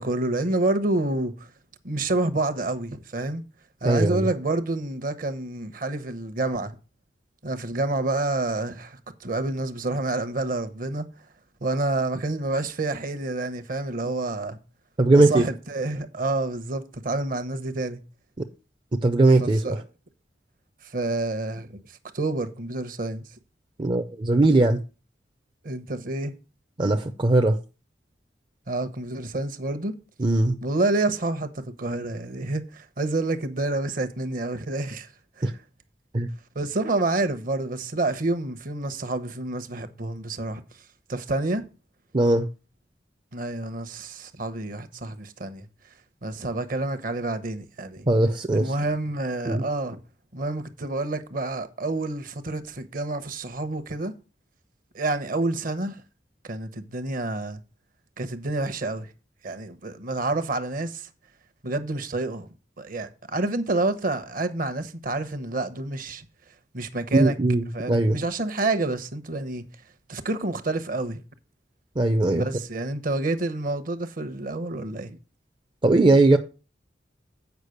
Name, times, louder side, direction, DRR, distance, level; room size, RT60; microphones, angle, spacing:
voice 1, 0.0-1.5 1.8-3.4 3.8-6.7 7.4-11.1 11.6-14.6 15.1-18.0 19.4-19.8 20.8-21.8 22.1-23.2 25.6-26.3 28.7-29.9 30.6-35.1 35.4-35.6 36.5-40.6 41.1-41.7 43.3-45.6 46.2-48.1 48.5-50.0 50.3-54.1 54.9-56.0 56.4-57.6 58.2-59.1 59.4-61.1 61.6-62.5 62.8-66.2 66.7-67.3 67.7-69.7 70.1-71.2 72.3-75.2, right 2 dB, 50° right, 1.0 m, -28 dB
voice 2, 3.8-4.3 15.0-15.4 19.0-19.8 23.8-24.8 26.8-27.6 30.2-30.6 35.4-35.5 36.1-36.3 42.1-42.5 48.1-48.7 49.5-49.6 67.1-68.2 72.0-72.4 75.8-76.4, right 2 dB, 30° right, 0.5 m, -19 dB
8.2 x 5.3 x 6.4 m
head